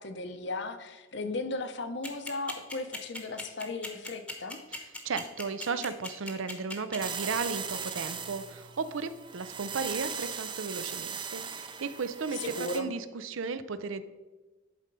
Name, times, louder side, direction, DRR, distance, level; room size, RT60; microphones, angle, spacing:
voice 1, 0.0-4.6 12.3-12.9, left 3 dB, 55° left, 8 dB, 0.7 m, -36 dB
sound 1, 2.0-7.0, left 2 dB, 5° left, 0.9 m, -37 dB
voice 2, 5.0-14.0, right 4 dB, 70° right, 13 dB, 0.5 m, -35 dB
sound 2, 7.0-12.8, right 6 dB, 20° right, 0.5 m, -38 dB
10.5 x 4.3 x 5.3 m, 1.2 s
head